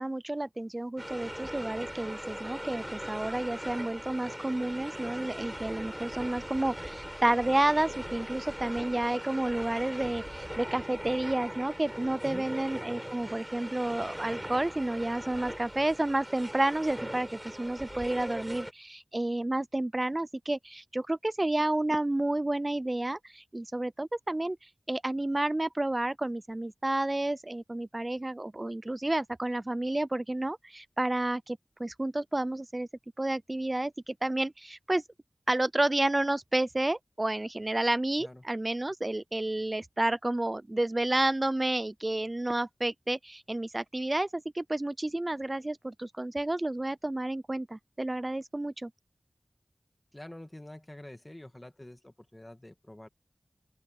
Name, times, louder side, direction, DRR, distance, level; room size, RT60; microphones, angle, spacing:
voice 1, 0.0-32.9 33.2-35.0 35.5-48.9, right 1 dB, 35° right, 0.4 m, -30 dB
sound 1, 1.0-18.7, equal, 10° right, 5.1 m, -40 dB
voice 2, 12.2-12.5 38.2-38.4 50.1-53.1, left 1 dB, 20° left, 2.0 m, -46 dB
open air
wide cardioid pair, 45°, 0 cm